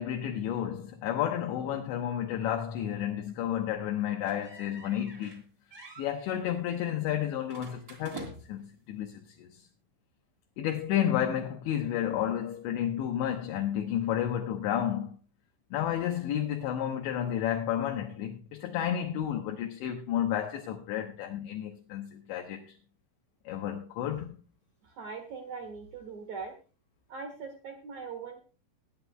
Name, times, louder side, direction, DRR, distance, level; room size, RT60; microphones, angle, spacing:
voice 1, 0.0-5.4 6.0-9.7 10.6-15.2 15.7-22.8 23.5-24.4, left 10 dB, 75° left, 3.1 m, -31 dB
sound 1, 4.3-5.4 5.7-6.1 7.5-8.7, right 3 dB, 25° right, 2.6 m, -46 dB
voice 2, 24.8-26.5 27.1-28.4, right 5 dB, 70° right, 1.7 m, -41 dB
22.0 x 9.9 x 2.3 m
omnidirectional pair, 5.6 m